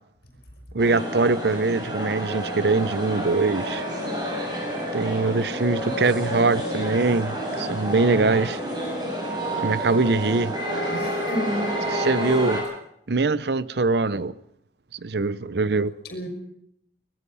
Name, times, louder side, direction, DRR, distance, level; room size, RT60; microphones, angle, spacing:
voice 1, 0.7-3.8 4.9-8.6 9.6-10.5 11.9-12.6 13.1-14.3 14.9-15.9, right 3 dB, 70° right, 0.7 m, -23 dB
sound 1, 0.8-12.6, equal, 25° right, 7.3 m, -29 dB
voice 2, 10.9-11.9 16.0-16.3, equal, 60° left, 5.8 m, -30 dB
24.0 x 20.5 x 5.5 m
head